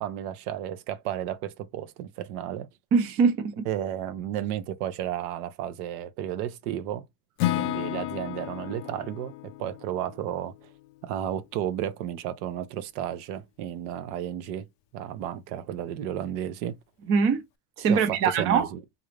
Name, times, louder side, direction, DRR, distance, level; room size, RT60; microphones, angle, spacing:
voice 1, 0.0-2.7 3.7-7.0 7.6-10.5 11.0-14.7 14.9-16.8 17.9-18.8, right 11 dB, 75° right, 0.8 m, -33 dB
voice 2, 2.9-3.7 17.1-17.4 17.8-18.7, right 5 dB, 30° right, 0.6 m, -22 dB
Acoustic guitar / Strum, 7.4-11.4, left 15 dB, 55° left, 0.5 m, -33 dB
3.9 x 2.6 x 3.1 m
cardioid pair, 175°, 45 cm